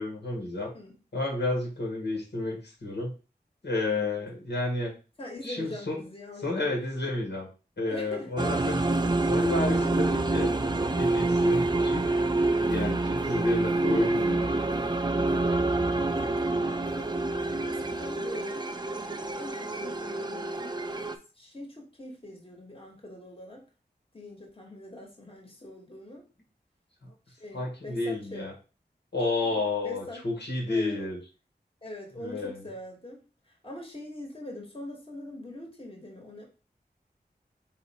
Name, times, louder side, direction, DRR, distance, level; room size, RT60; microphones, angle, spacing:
voice 1, 0.0-0.7 1.1-3.1 3.6-4.9 5.4-6.0 6.4-7.5 7.8-8.8 9.2-10.5 11.0-12.3 12.6-14.5 27.0-27.1 27.5-28.5 29.1-31.2 32.2-32.6, left 2 dB, 80° left, -2 dB, 2.0 m, -31 dB
voice 2, 5.2-6.7 7.9-8.3 16.1-17.2 17.6-18.7 19.3-23.6 24.1-26.3 27.3-28.5 29.4-29.6 29.8-30.2 30.7-31.1 31.8-33.2 33.6-36.5, left 1 dB, 30° left, 0 dB, 1.5 m, -43 dB
sound 1, 8.4-21.2, right 2 dB, 25° right, 0.5 m, -27 dB
4.1 x 2.9 x 4.3 m, 0.33 s
wide cardioid pair, 50°, 17 cm